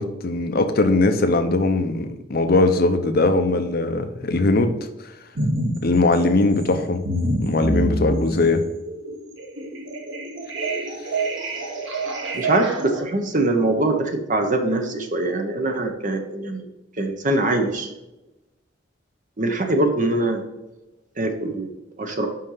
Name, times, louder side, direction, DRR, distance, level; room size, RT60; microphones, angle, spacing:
voice 1, 0.0-4.7 5.8-7.0 7.4-8.6, left 2 dB, 50° left, 7 dB, 0.7 m, -20 dB
sound 1, 5.3-5.8 6.1-13.0, right 1 dB, 80° right, 1.4 m, -27 dB
voice 2, 12.3-16.7 17.0-17.9 19.4-20.4 21.2-21.7 22.0-22.3, right 2 dB, 45° right, 5 dB, 1.0 m, -23 dB
5.7 x 5.4 x 5.6 m, 1.0 s
head